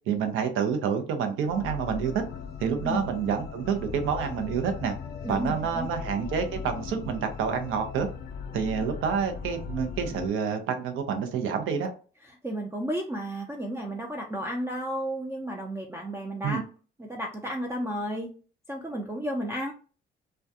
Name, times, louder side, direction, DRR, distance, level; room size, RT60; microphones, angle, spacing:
voice 1, 0.1-2.2 2.6-4.9 5.3-8.1 8.5-11.9 16.4-16.6, right 7 dB, 85° right, 7 dB, 0.6 m, -28 dB
sound 1, 1.5-10.3, left 6 dB, 55° left, 0.5 m, -38 dB
voice 2, 5.2-5.9 12.2-16.6 17.0-18.3 18.7-19.7, equal, 15° right, 0 dB, 0.4 m, -32 dB
2.4 x 2.2 x 2.6 m, 0.37 s
cardioid pair, 90°, 20 cm